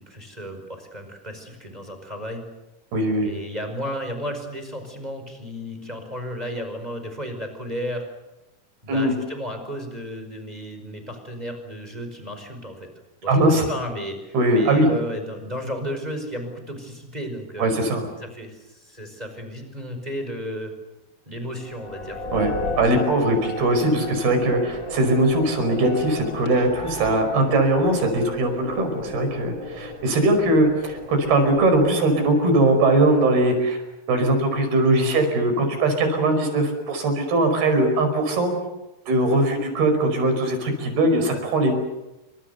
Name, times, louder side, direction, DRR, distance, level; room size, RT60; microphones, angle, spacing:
voice 1, 0.1-2.4 3.2-8.0 8.8-12.9 13.2-17.7 18.2-20.7 21.2-22.2 41.3-41.4, equal, 10° right, 5 dB, 5.0 m, -33 dB
voice 2, 2.9-3.3 8.9-9.1 13.3-13.7 14.3-14.9 17.6-18.1 22.3-22.5 22.8-33.8 34.1-38.5 39.1-41.7, right 2 dB, 75° right, 6 dB, 7.0 m, -20 dB
sound 1, 21.6-32.9, left 2 dB, 25° left, 2.7 m, -35 dB
28.5 x 25.0 x 6.9 m, 0.97 s
omnidirectional pair, 4.5 m